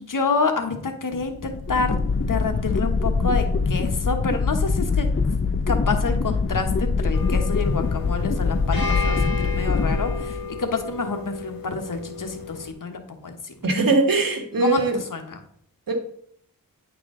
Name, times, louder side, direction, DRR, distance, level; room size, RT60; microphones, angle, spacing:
voice 1, 0.0-2.0 2.3-5.1 5.7-13.5 14.6-14.8 15.1-15.4, left 4 dB, 60° left, 6 dB, 1.2 m, -28 dB
sound 1, 1.2-10.7, left 4 dB, 35° left, 0.6 m, -23 dB
sound 2, 7.1-12.7, left 4 dB, 80° left, 1.3 m, -33 dB
voice 2, 13.6-15.0 15.9-16.0, right 3 dB, 70° right, 3 dB, 1.6 m, -21 dB
9.9 x 4.8 x 3.7 m, 0.67 s
wide cardioid pair, 60°, 35 cm